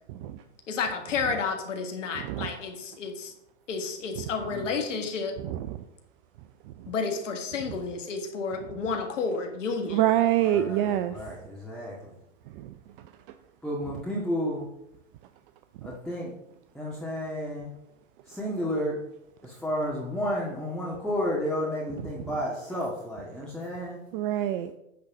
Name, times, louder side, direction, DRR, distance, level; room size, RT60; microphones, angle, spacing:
voice 1, 0.7-3.3 3.7-5.3 6.9-10.0, left 5 dB, 70° left, 4 dB, 1.6 m, -31 dB
voice 2, 5.4-5.8 9.9-11.2 12.5-12.7 24.1-24.7, right 12 dB, 45° right, 10 dB, 0.5 m, -25 dB
voice 3, 10.4-11.9 13.6-14.7 15.8-16.3 16.7-17.7 18.3-19.0 19.4-24.0, equal, ahead, -7 dB, 1.8 m, -31 dB
9.3 x 4.0 x 6.1 m, 0.84 s
hypercardioid pair, 105°, 38 cm